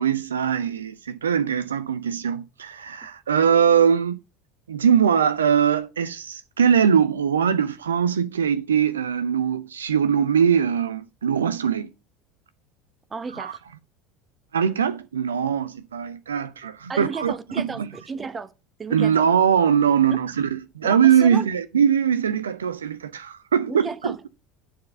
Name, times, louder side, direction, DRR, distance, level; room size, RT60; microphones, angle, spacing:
voice 1, 0.0-4.2 4.7-11.9 13.4-13.5 14.5-17.9 18.9-24.3, right 8 dB, 75° right, 0.4 m, -21 dB
voice 2, 13.1-13.6 16.9-18.5 18.8-19.3 20.1-20.2 20.8-21.5 23.7-24.3, right 4 dB, 25° right, 0.9 m, -33 dB
9.5 x 4.2 x 5.6 m
figure-of-eight pair, 70°, 0 cm